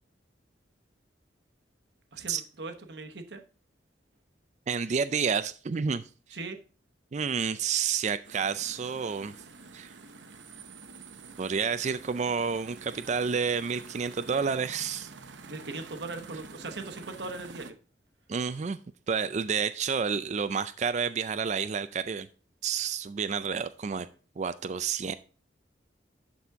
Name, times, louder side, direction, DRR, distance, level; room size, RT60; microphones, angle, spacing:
voice 1, 2.1-3.4 6.3-6.6 15.5-17.7, right 3 dB, 70° right, 7 dB, 1.1 m, -39 dB
voice 2, 4.7-6.0 7.1-9.3 9.7-10.0 11.4-15.1 18.3-18.8 19.1-22.3 22.6-24.1 24.4-25.1, right 6 dB, 40° right, 12 dB, 0.4 m, -29 dB
sound 1, 8.2-17.7, right 4 dB, 85° right, 0.8 m, -48 dB
11.0 x 4.2 x 3.5 m, 0.37 s
head